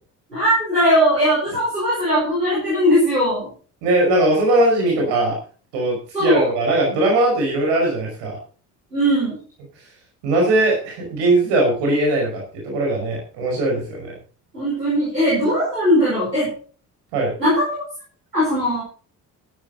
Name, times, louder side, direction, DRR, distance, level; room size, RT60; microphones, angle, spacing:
voice 1, 0.3-3.5 6.1-6.5 8.9-9.4 14.5-16.5 17.4-17.6 18.3-18.8, equal, 90° right, -7 dB, 5.3 m, -19 dB
voice 2, 3.8-5.4 5.7-8.4 10.2-14.1 17.1-17.3, right 2 dB, 65° right, 0 dB, 5.6 m, -19 dB
13.5 x 12.0 x 4.1 m, 0.39 s
figure-of-eight pair, 50°, 46 cm